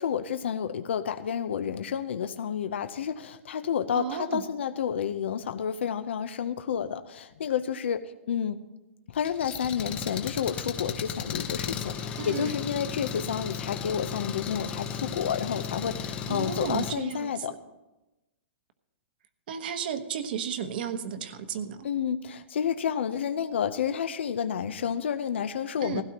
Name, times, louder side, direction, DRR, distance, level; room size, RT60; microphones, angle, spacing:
voice 1, 0.0-8.6 9.1-17.5 21.8-26.0, left 8 dB, 75° left, 9 dB, 0.7 m, -30 dB
voice 2, 3.9-4.4 12.2-12.5 16.3-17.3 19.5-21.9 25.8-26.0, right 8 dB, 50° right, 9 dB, 1.2 m, -33 dB
Engine, 9.1-16.9, left 7 dB, 20° left, 0.8 m, -35 dB
19.0 x 16.0 x 3.0 m, 1.0 s
hypercardioid pair, 165°, 6 cm